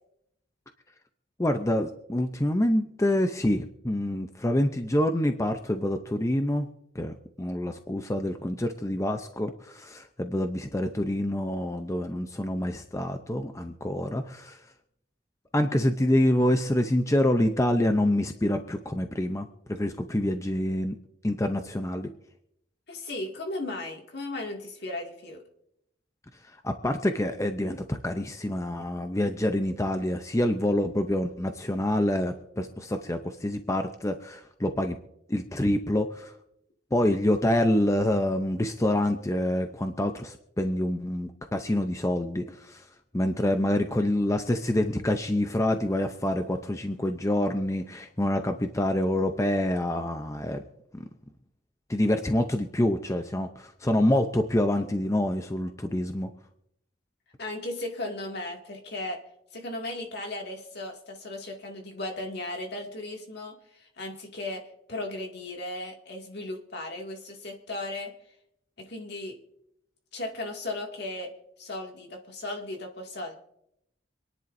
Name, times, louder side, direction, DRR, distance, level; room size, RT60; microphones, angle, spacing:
voice 1, 1.4-6.7 6.9-14.6 15.5-21.0 21.2-22.1 26.6-35.0 35.3-36.3 36.9-42.8 43.1-50.6 50.9-51.1 51.9-56.3, left 1 dB, 15° left, 6 dB, 0.6 m, -26 dB
voice 2, 22.9-25.4 57.4-59.2 59.5-64.6 64.9-68.1 68.8-69.4 70.1-71.3 71.6-73.3, left 2 dB, 60° left, 1 dB, 2.3 m, -36 dB
26.0 x 10.5 x 2.7 m, 0.78 s
head